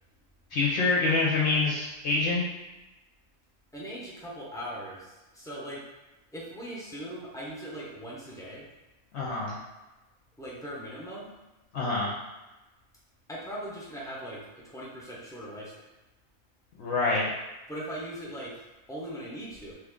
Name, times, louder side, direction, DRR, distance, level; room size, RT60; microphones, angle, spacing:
voice 1, 0.5-2.5 9.1-9.6 11.7-12.1 16.8-17.3, left 3 dB, 65° left, -5 dB, 0.8 m, -26 dB
voice 2, 3.7-5.8 6.3-8.7 10.4-11.3 13.3-15.7 17.7-18.6 18.9-19.7, equal, 5° left, -6 dB, 0.5 m, -39 dB
3.0 x 2.4 x 3.5 m, 1.1 s
omnidirectional pair, 1.4 m